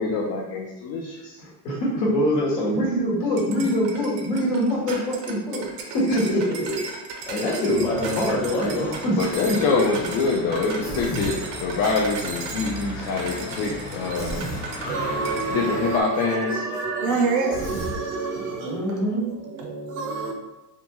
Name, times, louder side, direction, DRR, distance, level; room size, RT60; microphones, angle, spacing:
voice 1, 0.0-1.3 9.2-14.4 15.5-16.6, left 4 dB, 55° left, 0 dB, 0.5 m, -25 dB
voice 2, 1.4-6.8 7.3-9.7 18.6-19.2, equal, 75° left, -5 dB, 1.3 m, -24 dB
sound 1, 3.4-14.9 15.3-15.5, right 4 dB, 85° right, 0.7 m, -36 dB
Church bell / Traffic noise roadway noise, 7.7-16.0, left 1 dB, 20° left, 0.8 m, -36 dB
Human voice, 10.8-11.4 14.2-14.6 17.5-18.0, right 1 dB, 40° left, 1.1 m, -32 dB
voice 3, 14.9-20.3, right 4 dB, 40° right, 1 dB, 0.5 m, -27 dB
2.5 x 2.3 x 2.9 m, 1.0 s
supercardioid pair, 110°, 50 cm